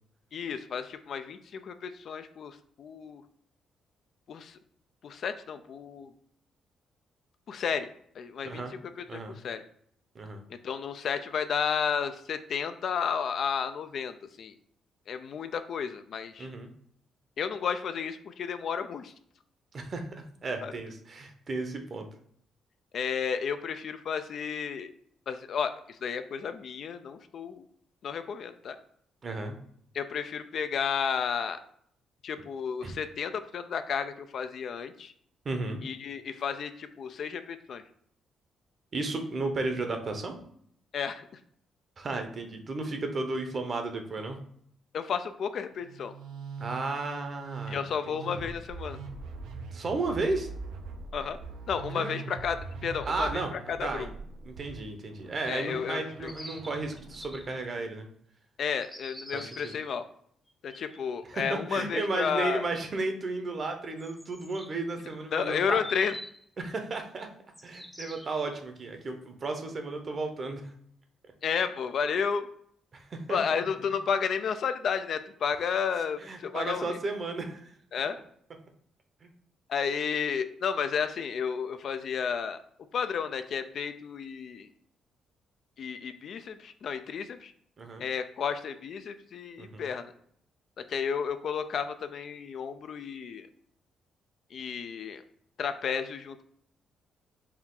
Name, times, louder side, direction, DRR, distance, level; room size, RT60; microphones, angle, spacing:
voice 1, 0.3-3.2 4.3-4.6 5.0-6.1 7.5-7.9 8.1-9.6 10.5-14.5 15.1-16.5 17.4-19.1 20.6-20.7 22.9-24.9 25.3-27.7 28.0-28.8 29.9-31.6 32.2-35.1 35.8-37.8 40.9-41.4 44.9-46.1 47.7-49.0 51.1-51.4 51.7-54.1 55.5-56.3 58.6-60.0 60.6-62.6 65.3-66.2 71.4-72.5 73.3-77.0 77.9-78.2 79.7-82.6 82.9-84.7 85.8-87.5 88.0-90.1 90.8-93.5 94.5-95.2 95.6-96.5, left 6 dB, 60° left, 10 dB, 0.3 m, -32 dB
voice 2, 8.4-8.7 9.1-9.4 10.1-10.4 16.4-16.7 19.7-20.0 20.4-22.1 29.2-29.6 32.8-32.9 35.4-35.8 38.9-40.4 42.0-44.4 46.6-47.8 48.1-48.5 49.7-50.5 51.9-52.1 53.1-54.1 54.4-58.1 59.3-59.5 61.3-65.8 66.6-67.3 67.6-70.6 72.9-73.4 76.2-77.7 79.2-79.3 87.8-88.0 89.6-89.9, right 3 dB, 40° right, 5 dB, 0.7 m, -34 dB
Musical instrument, 45.7-57.5, right 4 dB, 85° right, 0.5 m, -42 dB
sound 1, 56.1-57.8 58.8-59.9 60.5-61.1 63.5-63.6 64.0-66.4 67.5-68.6, equal, 5° left, 0.7 m, -47 dB
4.3 x 2.3 x 3.8 m, 0.65 s
cardioid pair, 90°, 0 cm